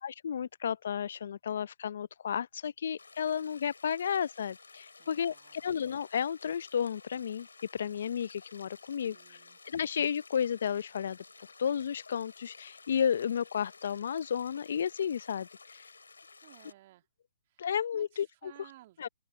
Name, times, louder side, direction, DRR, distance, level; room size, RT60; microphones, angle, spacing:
voice 1, 0.0-7.5 7.7-9.4 9.7-11.2 11.6-15.9 17.6-18.5 19.0-19.1, left 8 dB, 65° left, 0.6 m, -32 dB
sound 1, 3.0-16.7, left 4 dB, 85° left, 7.6 m, -54 dB
voice 2, 5.0-5.7 8.8-9.6 16.4-17.1 17.5-17.7 17.9-19.1, right 16 dB, 45° right, 2.6 m, -58 dB
open air
hypercardioid pair, 135°, 0 cm